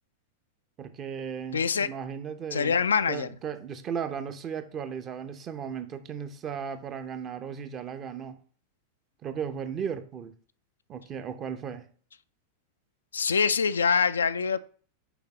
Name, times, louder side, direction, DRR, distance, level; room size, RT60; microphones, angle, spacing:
voice 1, 0.8-2.8 3.1-8.4 9.2-10.3 10.9-11.9, right 7 dB, 30° right, 0.7 m, -36 dB
voice 2, 1.5-1.9 2.5-3.3 13.1-14.6, left 6 dB, 70° left, 0.3 m, -24 dB
6.9 x 4.7 x 3.0 m
figure-of-eight pair, 90°, 0 cm